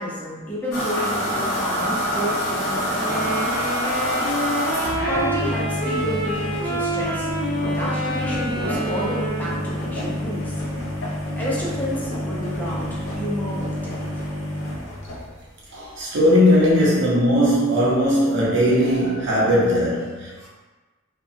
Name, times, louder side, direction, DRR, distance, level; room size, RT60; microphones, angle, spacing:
voice 1, 0.0-3.3 5.1-7.3 7.6-10.6 11.3-14.0, equal, 10° left, -7 dB, 0.5 m, -30 dB
sound 1, 0.7-15.5, equal, 70° left, 0.7 m, -27 dB
sound 2, 2.9-9.7, right 1 dB, 25° left, 1.1 m, -27 dB
voice 2, 4.9-5.3 15.7-20.5, equal, 65° right, -6 dB, 0.8 m, -19 dB
2.8 x 2.2 x 2.5 m, 1.3 s
head